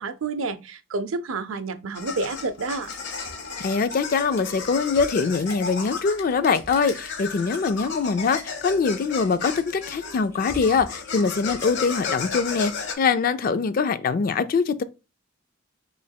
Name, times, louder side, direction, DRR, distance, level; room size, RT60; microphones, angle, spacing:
voice 1, 0.0-2.9, right 3 dB, 70° right, 0.5 m, -29 dB
sound 1, 1.9-12.9, left 5 dB, 60° left, 0.8 m, -34 dB
Typing, 2.9-11.8, equal, 15° left, 1.7 m, -45 dB
voice 2, 3.6-14.8, left 5 dB, 40° left, 0.3 m, -23 dB
5.4 x 3.2 x 2.2 m
head